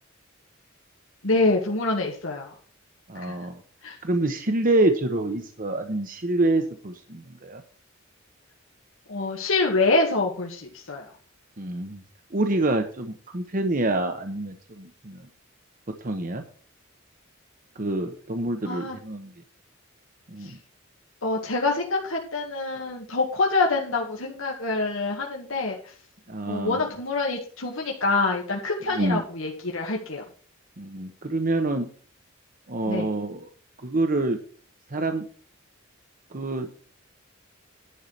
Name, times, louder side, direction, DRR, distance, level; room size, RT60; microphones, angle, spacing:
voice 1, 1.2-2.5 3.1-3.5 3.8-4.0 9.1-11.1 18.6-19.0 20.4-20.6 21.2-25.9 26.5-30.2 32.9-33.1, left 3 dB, 80° left, 0 dB, 1.9 m, -26 dB
voice 2, 3.1-3.6 4.0-7.6 11.6-12.0 12.3-15.3 16.0-16.4 17.8-19.3 20.3-20.6 26.3-26.8 28.9-29.2 30.8-31.9 32.7-33.4 33.8-34.4 34.9-35.2 36.3-36.8, right 2 dB, 45° right, 6 dB, 1.0 m, -26 dB
11.0 x 4.9 x 7.2 m, 0.43 s
head